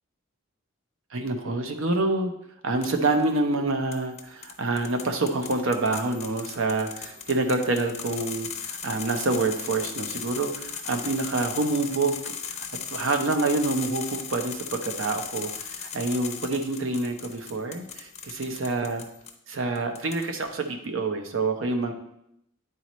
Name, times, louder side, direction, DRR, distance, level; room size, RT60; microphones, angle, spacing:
voice 1, 1.1-2.3 2.6-12.2 12.4-12.7 12.9-18.1 18.4-19.0 19.5-21.9, right 3 dB, 75° right, 6 dB, 0.8 m, -27 dB
sound 1, 2.8-3.2 3.9-19.3 19.8-20.5, left 7 dB, 35° left, 0.6 m, -38 dB
9.3 x 4.1 x 3.1 m, 0.78 s
head